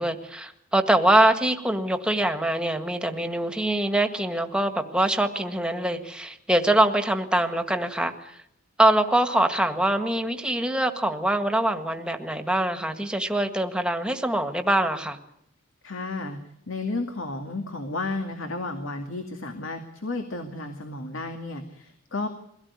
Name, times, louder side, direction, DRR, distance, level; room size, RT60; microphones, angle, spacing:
voice 1, 0.0-8.4 8.8-15.2, right 1 dB, 5° right, 6 dB, 1.8 m, -24 dB
voice 2, 15.8-16.4 16.7-22.3, left 2 dB, 75° left, 5 dB, 2.3 m, -32 dB
23.0 x 17.0 x 9.7 m, 0.76 s
head